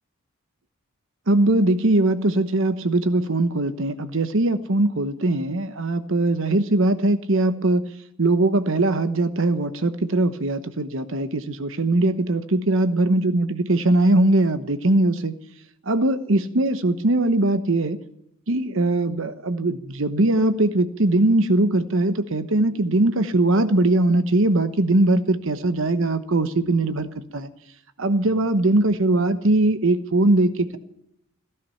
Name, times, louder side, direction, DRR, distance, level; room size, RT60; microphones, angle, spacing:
voice 1, 1.3-7.9 8.2-15.3 15.9-18.0 18.5-27.5 28.0-30.8, right 2 dB, 65° right, 11 dB, 1.0 m, -21 dB
15.5 x 13.5 x 5.8 m, 0.78 s
head